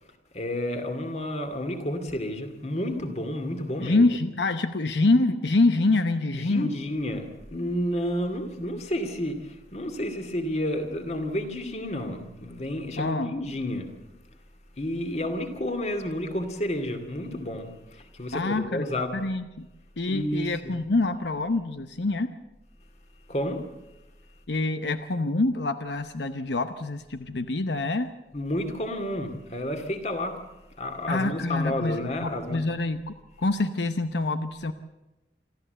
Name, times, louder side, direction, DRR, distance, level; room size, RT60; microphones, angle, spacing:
voice 1, 0.0-4.1 6.3-13.9 14.7-19.3 20.0-20.8 23.3-23.7 28.3-30.4 30.8-32.6, left 1 dB, 40° left, 7 dB, 2.3 m, -31 dB
voice 2, 3.8-6.7 13.0-13.3 18.3-18.9 19.1-19.7 20.0-22.4 24.5-28.1 31.1-34.7, left 2 dB, 85° left, 10 dB, 0.9 m, -26 dB
26.5 x 13.5 x 7.9 m, 1.0 s
head